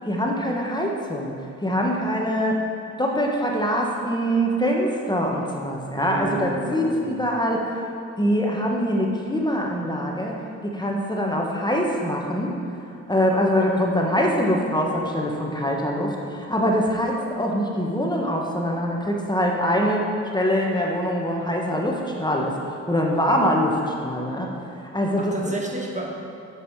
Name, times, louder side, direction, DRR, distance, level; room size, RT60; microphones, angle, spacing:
voice 1, 0.1-1.3 1.6-2.6 3.0-7.6 8.2-10.3 10.7-12.5 13.1-20.0 20.3-22.5 22.9-24.5 24.9-25.3, equal, 15° left, -1 dB, 1.3 m, -23 dB
voice 2, 5.9-7.2 25.2-26.1, right 2 dB, 20° right, 0 dB, 1.5 m, -31 dB
8.0 x 7.5 x 4.8 m, 2.7 s
supercardioid pair, 65°, 33 cm